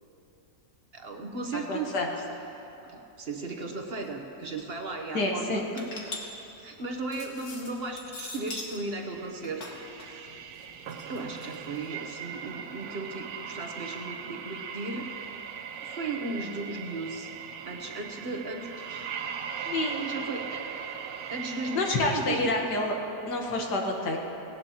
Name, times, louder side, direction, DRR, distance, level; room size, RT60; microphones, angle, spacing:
voice 1, 0.9-1.9 2.9-5.9 6.6-10.3 11.1-15.1 15.8-17.3 17.7-19.1 20.0-21.0 21.3-22.5, right 3 dB, 45° right, 3 dB, 1.0 m, -36 dB
voice 2, 1.7-2.1 5.1-5.6 19.7-20.1 21.7-23.0 23.3-24.2, left 2 dB, 75° left, 0 dB, 2.0 m, -28 dB
sound 1, 4.0-4.1 4.3-4.7 5.2-8.8 9.2-11.9, left 2 dB, 60° left, 2.0 m, -42 dB
sound 2, 9.0-22.1, right 7 dB, 65° right, 1.1 m, -39 dB
18.5 x 18.0 x 2.9 m, 3.0 s
omnidirectional pair, 1.8 m